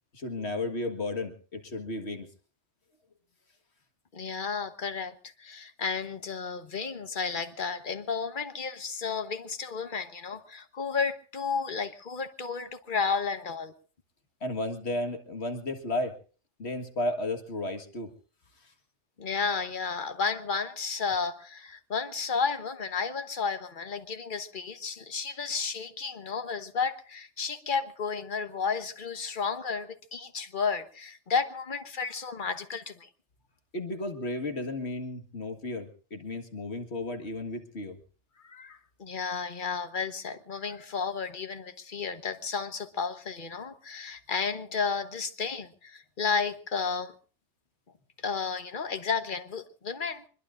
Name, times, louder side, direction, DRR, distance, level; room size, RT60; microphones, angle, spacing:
voice 1, 0.1-2.3 14.4-16.2 16.6-18.1 18.6-18.7 33.7-38.0, left 2 dB, 70° left, 5 dB, 2.0 m, -33 dB
voice 2, 4.1-13.7 19.2-33.1 38.4-47.1 48.2-50.3, left 5 dB, 45° left, 9 dB, 1.4 m, -32 dB
25.0 x 21.5 x 2.6 m, 0.39 s
omnidirectional pair, 1.2 m